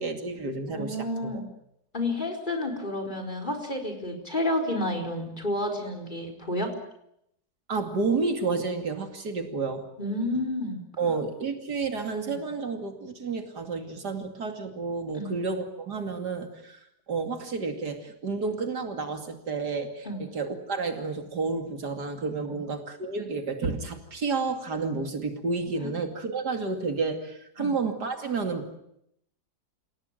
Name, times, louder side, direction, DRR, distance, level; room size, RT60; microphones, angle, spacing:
voice 1, 0.0-1.0 1.2-1.4 7.7-9.8 11.0-16.8 17.1-28.8, right 4 dB, 85° right, 6 dB, 3.1 m, -30 dB
voice 2, 0.7-1.4 1.9-6.7 10.0-10.8 12.2-12.4 15.1-15.4 20.0-20.2 22.5-22.6 25.8-25.9 27.6-27.7, left 1 dB, 30° left, 5 dB, 4.8 m, -30 dB
29.0 x 17.0 x 9.2 m, 0.76 s
omnidirectional pair, 1.7 m